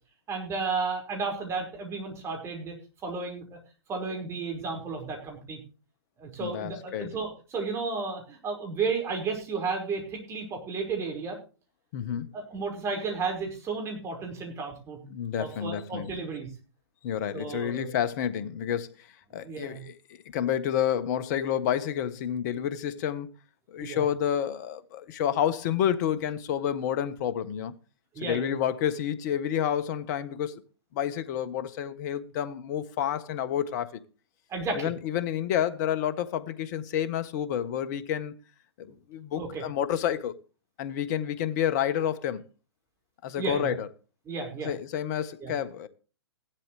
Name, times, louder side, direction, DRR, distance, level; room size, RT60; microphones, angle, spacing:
voice 1, 0.3-2.7 3.0-3.6 3.9-5.6 6.2-11.4 12.3-15.0 15.4-16.5 17.3-17.9 19.4-19.8 23.8-24.0 28.2-28.6 34.5-34.9 39.4-39.6 43.4-43.8 44.3-44.7 45.4-45.5, right 4 dB, 20° right, 5.2 m, -33 dB
voice 2, 6.4-7.1 11.9-12.3 15.1-16.1 17.0-19.1 19.3-23.3 23.7-27.7 28.2-30.6 30.9-34.0 34.7-38.3 38.8-40.3 40.8-42.4 43.2-43.9 44.6-45.9, left 9 dB, 40° left, 1.3 m, -29 dB
16.0 x 12.0 x 3.3 m
hypercardioid pair, 125°, 14 cm